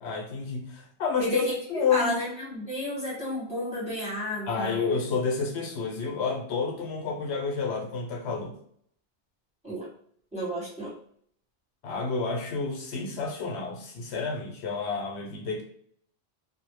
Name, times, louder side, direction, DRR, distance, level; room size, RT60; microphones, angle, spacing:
voice 1, 0.0-1.4 1.7-2.1 4.4-8.6 11.8-15.6, left 5 dB, 80° left, 1 dB, 0.8 m, -30 dB
voice 2, 1.2-4.7 9.6-9.9 10.3-10.9, left 1 dB, 5° right, -7 dB, 1.1 m, -31 dB
2.1 x 2.0 x 3.1 m, 0.63 s
omnidirectional pair, 1.1 m